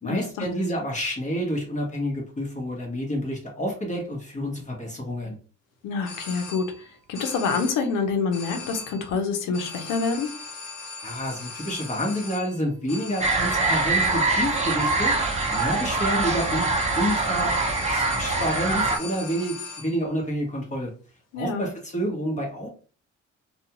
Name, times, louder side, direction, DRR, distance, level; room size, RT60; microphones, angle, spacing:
voice 1, 0.0-5.4 11.0-15.1 15.5-16.7 17.0-17.5 17.9-20.9 21.3-22.7, equal, 25° left, -1 dB, 1.0 m, -29 dB
voice 2, 5.8-6.6 7.1-10.3 21.3-21.6, left 4 dB, 90° left, 6 dB, 0.7 m, -26 dB
sound 1, 6.0-6.9 7.1-8.0 8.3-9.1 9.5-20.1, left 4 dB, 55° left, 1.1 m, -39 dB
sound 2, 13.2-19.0, right 3 dB, 20° right, 0.7 m, -24 dB
2.4 x 2.3 x 2.9 m, 0.38 s
cardioid pair, 85°, 30 cm